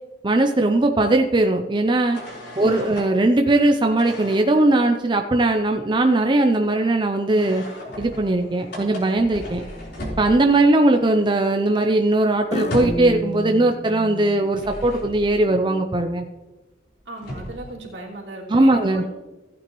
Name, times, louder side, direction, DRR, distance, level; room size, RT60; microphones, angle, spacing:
voice 1, 0.2-2.2 2.6-7.6 8.0-9.6 10.2-16.3 18.5-19.0, right 2 dB, 25° right, 5 dB, 0.5 m, -19 dB
sound 1, 2.1-3.1 4.0-4.5 7.4-10.8 11.1-11.2 11.5-13.2 14.2-15.4 16.9-17.0 17.2-17.7, left 1 dB, 65° left, 4.1 m, -35 dB
voice 2, 2.5-2.9 17.0-19.1, right 1 dB, 75° right, -2 dB, 2.9 m, -36 dB
sound 2, 8.7-9.1 9.7-10.2 12.5-14.4, left 1 dB, 40° left, 0.8 m, -31 dB
15.5 x 8.6 x 3.1 m, 1.1 s
head